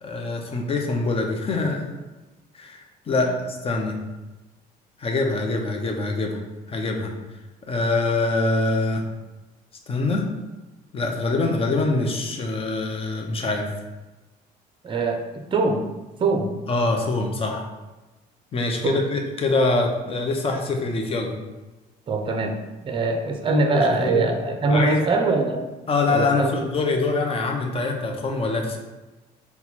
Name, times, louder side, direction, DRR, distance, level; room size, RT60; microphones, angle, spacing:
voice 1, 0.0-1.9 2.5-3.9 5.0-6.4 6.7-7.1 7.7-9.0 9.9-10.2 10.9-13.7 16.7-17.7 18.5-21.3 23.7-24.3 24.7-25.0 25.9-28.8, left 3 dB, 35° left, 2 dB, 0.7 m, -24 dB
voice 2, 14.8-15.8 16.2-16.5 18.8-19.0 22.1-22.6 22.8-25.6 26.1-26.6, right 3 dB, 30° right, 4 dB, 0.5 m, -23 dB
4.3 x 2.2 x 4.2 m, 1.1 s
cardioid pair, 110°, 17 cm